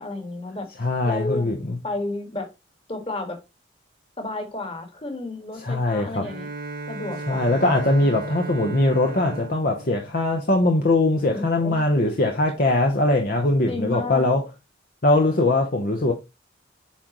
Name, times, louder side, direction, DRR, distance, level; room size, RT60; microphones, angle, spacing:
voice 1, 0.0-0.7 1.0-1.5 1.8-2.5 2.9-3.4 4.2-6.5 6.9-7.8 11.3-11.8 13.7-14.3, left 2 dB, 30° left, 1.7 m, -32 dB
voice 2, 0.8-1.7 5.6-6.3 7.3-14.4 15.0-16.1, left 2 dB, 50° left, 0.9 m, -21 dB
Bowed string instrument, 6.2-11.0, right 2 dB, 50° right, 0.8 m, -36 dB
8.5 x 3.8 x 3.0 m
head